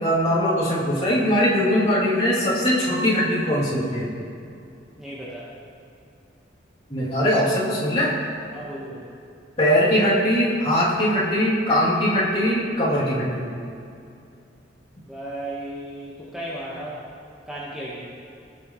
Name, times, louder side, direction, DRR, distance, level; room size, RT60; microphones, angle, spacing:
voice 1, 0.0-4.1 6.9-8.1 9.6-13.4, equal, 35° left, -9 dB, 2.9 m, -21 dB
voice 2, 5.0-5.5 8.5-9.1 15.1-17.0 17.5-18.1, right 1 dB, 5° right, -9 dB, 1.4 m, -35 dB
19.5 x 7.6 x 3.2 m, 2.6 s
head